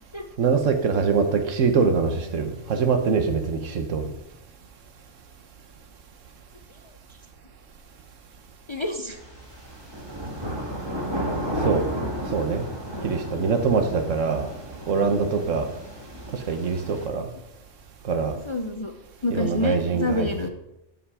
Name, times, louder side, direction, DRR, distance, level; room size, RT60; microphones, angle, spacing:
voice 1, 0.4-4.1 11.6-11.9 12.3-12.6 13.0-14.5 14.9-15.7 16.5-17.3 18.0-18.3 19.3-20.3, right 5 dB, 80° right, 7 dB, 1.4 m, -23 dB
voice 2, 8.7-9.2 18.5-18.9 19.2-20.5, left 2 dB, 30° left, 5 dB, 0.5 m, -27 dB
sound 1, 9.1-17.1, equal, 20° right, 1.9 m, -33 dB
13.0 x 5.7 x 4.9 m, 0.88 s
omnidirectional pair, 1.3 m